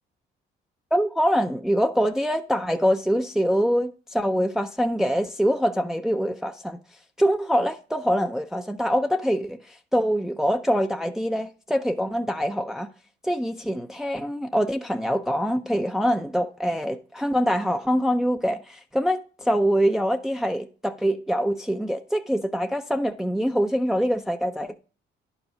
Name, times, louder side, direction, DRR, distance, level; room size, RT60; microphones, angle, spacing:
voice 1, 0.9-6.8 7.2-12.9 13.2-24.8, equal, ahead, 0.5 m, -24 dB
10.5 x 4.9 x 5.1 m
cardioid pair, 90°, 20 cm